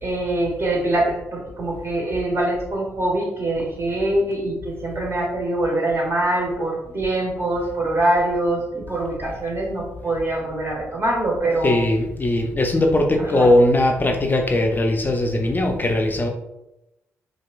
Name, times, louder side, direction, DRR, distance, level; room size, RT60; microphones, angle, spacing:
voice 1, 0.0-11.8 13.2-13.5, right 1 dB, 35° right, -1 dB, 1.2 m, -24 dB
voice 2, 11.6-16.3, left 1 dB, 30° left, 3 dB, 0.5 m, -19 dB
4.3 x 2.3 x 2.3 m, 0.90 s
hypercardioid pair, 40°, 7 cm